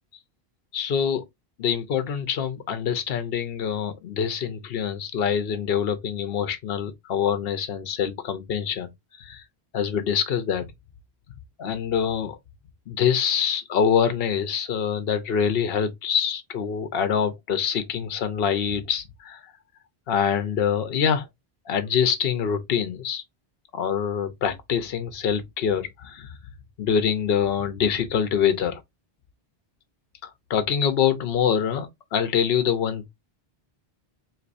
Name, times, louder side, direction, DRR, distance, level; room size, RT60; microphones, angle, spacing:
voice 1, 0.7-1.2 1.6-9.4 9.7-10.7 11.6-12.4 12.9-19.5 20.1-21.3 21.7-23.2 23.7-26.4 26.8-28.8 30.2-33.1, left 7 dB, 70° left, 0.9 m, -25 dB
4.4 x 2.9 x 2.5 m
omnidirectional pair, 1.1 m